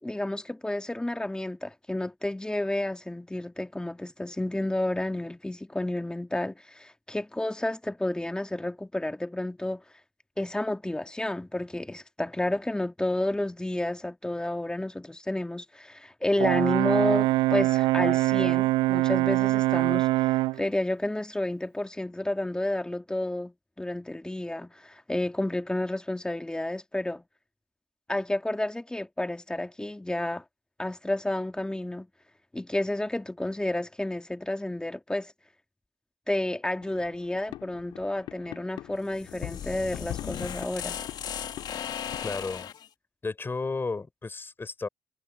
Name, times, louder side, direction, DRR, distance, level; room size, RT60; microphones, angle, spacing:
voice 1, 0.0-9.8 10.4-27.2 28.1-30.4 30.8-32.1 32.5-35.3 36.3-41.0, left 1 dB, 10° left, 2.1 m, -31 dB
Brass instrument, 16.4-20.6, right 19 dB, 75° right, 0.4 m, -23 dB
sound 1, 36.8-42.2, left 14 dB, 75° left, 2.6 m, -42 dB
sound 2, 39.0-42.9, left 9 dB, 60° left, 1.6 m, -37 dB
voice 2, 42.2-42.7 43.2-44.9, left 3 dB, 30° left, 6.4 m, -33 dB
supercardioid pair, 60°, 8 cm